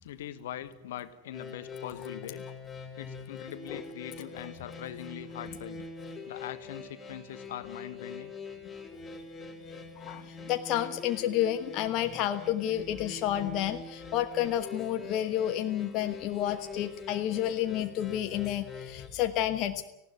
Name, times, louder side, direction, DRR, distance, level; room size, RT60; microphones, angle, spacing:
voice 1, 0.0-2.4 2.9-5.8 6.2-8.3, left 11 dB, 55° left, 12 dB, 1.3 m, -42 dB
sound 1, 1.3-19.1, left 4 dB, 10° left, 3.7 m, -44 dB
voice 2, 8.9-9.2 9.6-19.9, left 11 dB, 40° left, 7 dB, 1.2 m, -30 dB
19.0 x 16.0 x 9.5 m, 0.85 s
figure-of-eight pair, 90°, 0 cm